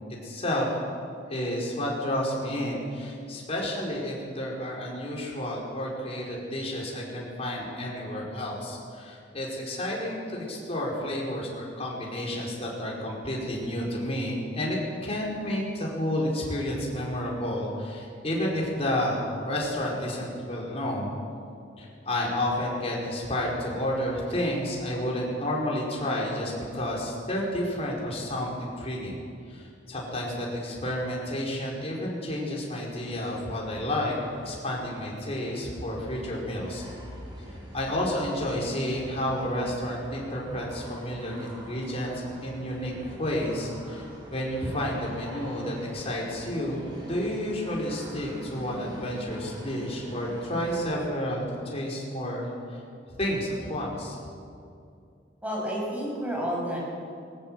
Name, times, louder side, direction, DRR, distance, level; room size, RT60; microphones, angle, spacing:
voice 1, 0.2-0.7 1.3-21.1 21.8-29.2 29.5-34.2 34.4-36.8 37.7-52.5 53.2-54.2, left 1 dB, 35° left, -3 dB, 5.1 m, -31 dB
sound 1, 32.9-51.1, equal, 25° right, 7.1 m, -44 dB
voice 2, 55.4-56.8, equal, 10° right, -4 dB, 7.0 m, -30 dB
20.0 x 17.5 x 7.7 m, 2.4 s
head